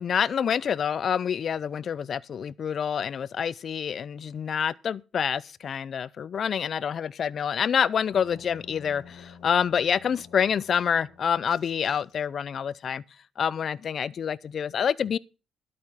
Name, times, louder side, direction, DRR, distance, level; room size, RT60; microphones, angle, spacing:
voice 1, 0.0-13.0 13.4-15.2, left 7 dB, 55° left, 0.6 m, -27 dB
sound 1, 8.1-12.6, left 6 dB, 80° left, 2.8 m, -50 dB
12.0 x 8.6 x 5.7 m
cardioid pair, 90°, 0 cm